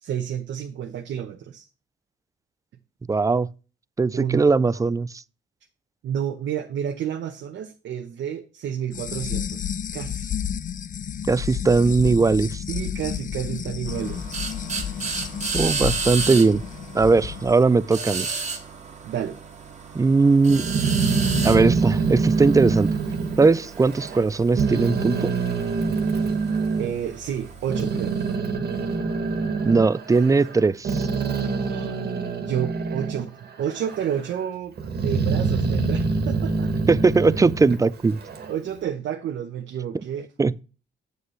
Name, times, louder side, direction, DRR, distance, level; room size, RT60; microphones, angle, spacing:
voice 1, 0.0-1.7 4.1-4.5 6.0-10.3 12.7-14.2 19.0-19.4 26.8-28.1 31.7-32.0 32.4-34.7 35.0-36.7 38.5-40.3, right 9 dB, 70° right, 0.9 m, -30 dB
voice 2, 3.1-3.5 4.0-5.1 11.3-12.6 15.5-16.6 16.9-18.3 19.9-20.7 21.4-22.9 23.4-25.3 29.7-31.1 36.9-38.2 40.4-40.5, right 4 dB, 15° right, 0.3 m, -19 dB
sound 1, 8.9-17.5, left 9 dB, 40° left, 0.5 m, -31 dB
sound 2, 13.9-28.3, right 4 dB, 35° right, 1.7 m, -34 dB
Growling, 20.5-24.3 24.6-26.9 27.4-33.3 33.6-34.3 34.8-38.5, right 4 dB, 55° right, 1.7 m, -25 dB
8.0 x 7.9 x 3.2 m
cardioid pair, 90°, 20 cm